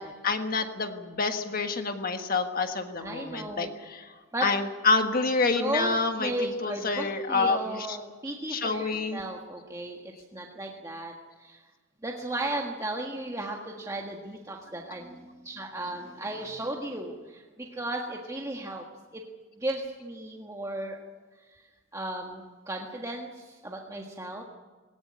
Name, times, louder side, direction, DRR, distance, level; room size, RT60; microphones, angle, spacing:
voice 1, 0.2-4.1 4.4-8.0 8.5-9.2, left 4 dB, 40° left, 6 dB, 1.5 m, -28 dB
voice 2, 3.0-3.7 4.3-4.5 5.5-11.1 11.4-11.6 12.0-18.8 19.1-19.2 19.5-21.0 21.5-21.6 21.9-24.4, right 1 dB, 15° right, 0 dB, 1.6 m, -35 dB
19.5 x 18.5 x 9.7 m, 1.4 s
head